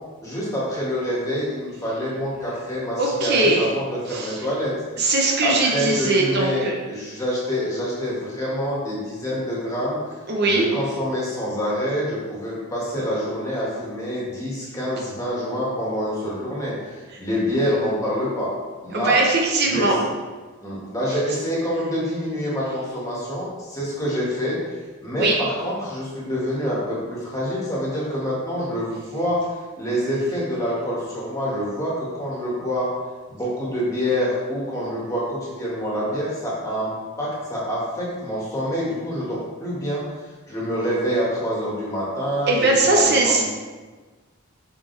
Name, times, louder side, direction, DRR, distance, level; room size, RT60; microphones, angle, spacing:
voice 1, 0.2-4.7 5.0-5.1 5.4-6.6 6.9-10.0 10.4-18.5 18.8-19.2 19.7-19.9 20.6-24.7 25.0-29.4 29.8-32.9 33.3-40.0 40.5-43.4, equal, 15° left, -6 dB, 2.0 m, -26 dB
voice 2, 3.0-3.7 4.1-4.5 5.0-6.7 10.3-10.7 17.1-17.2 18.9-20.0 25.2-25.3 42.5-43.4, right 2 dB, 50° right, -1 dB, 0.9 m, -20 dB
7.5 x 5.6 x 3.4 m, 1.3 s
head